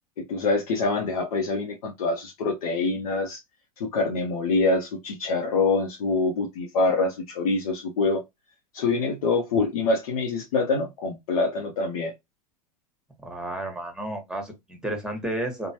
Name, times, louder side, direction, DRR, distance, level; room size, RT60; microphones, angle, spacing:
voice 1, 0.2-3.4 3.8-8.2 8.7-12.1, left 3 dB, 70° left, 0.7 m, -25 dB
voice 2, 13.2-15.7, right 1 dB, 5° right, 1.2 m, -32 dB
2.9 x 2.2 x 2.8 m
hypercardioid pair, 85°, 19 cm